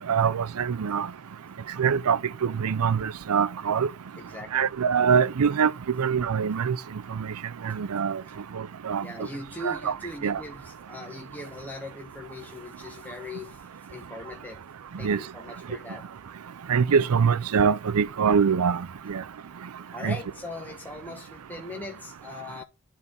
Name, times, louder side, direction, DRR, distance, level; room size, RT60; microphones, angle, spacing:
voice 1, 0.1-1.1 1.8-3.9 4.5-5.7 6.0-6.8 7.6-8.2 8.9-9.0 9.6-9.9 10.2-10.4 15.0-15.2 16.7-18.8 19.1-19.2 20.0-20.2, right 6 dB, 80° right, 0.5 m, -23 dB
voice 2, 4.2-4.7 7.7-7.8 9.0-14.6 15.0-16.1 19.9-22.6, left 2 dB, 10° left, 1.0 m, -40 dB
11.5 x 4.1 x 3.4 m
head